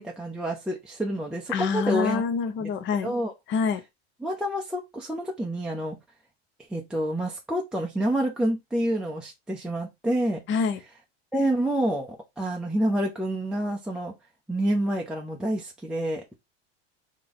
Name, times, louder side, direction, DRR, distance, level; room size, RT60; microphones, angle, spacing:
voice 1, 0.0-2.2 2.6-2.7 3.0-3.3 4.2-6.0 6.7-10.4 11.3-14.1 14.5-16.2, right 1 dB, ahead, 0.6 m, -28 dB
voice 2, 1.5-3.2 3.5-3.8 10.5-10.8, left 5 dB, 35° left, 0.8 m, -26 dB
3.4 x 2.9 x 3.9 m
hypercardioid pair, 115°, 34 cm